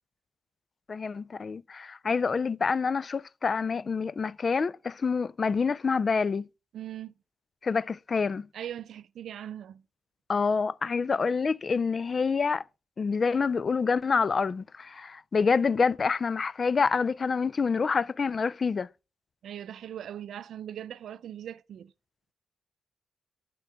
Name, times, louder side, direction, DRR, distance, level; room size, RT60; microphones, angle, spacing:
voice 1, 0.9-6.5 7.6-8.5 10.3-12.6 13.0-18.9, left 5 dB, 45° left, 0.3 m, -27 dB
voice 2, 6.7-7.1 8.5-9.8 19.4-21.9, right 10 dB, 80° right, 0.4 m, -40 dB
11.5 x 3.8 x 3.4 m
cardioid pair, 80°, 0 cm